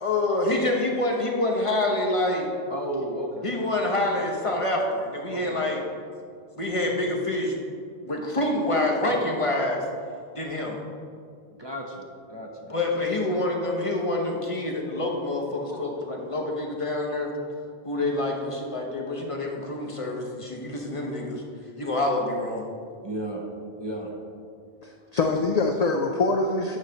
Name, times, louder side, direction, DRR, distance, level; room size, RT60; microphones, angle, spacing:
voice 1, 0.0-2.5 3.4-5.8 6.6-7.6 8.0-9.8 10.3-10.8 12.7-17.3 17.8-21.4 21.8-22.7, left 2 dB, 35° left, 0 dB, 0.9 m, -26 dB
voice 2, 2.7-3.6 5.3-5.7 11.5-12.8 15.7-15.9 17.7-17.9 23.0-23.5 23.8-24.1, right 1 dB, 30° right, -1 dB, 0.7 m, -34 dB
voice 3, 24.8-26.8, left 3 dB, 50° left, 3 dB, 0.5 m, -24 dB
9.4 x 3.2 x 6.4 m, 2.2 s
omnidirectional pair, 1.0 m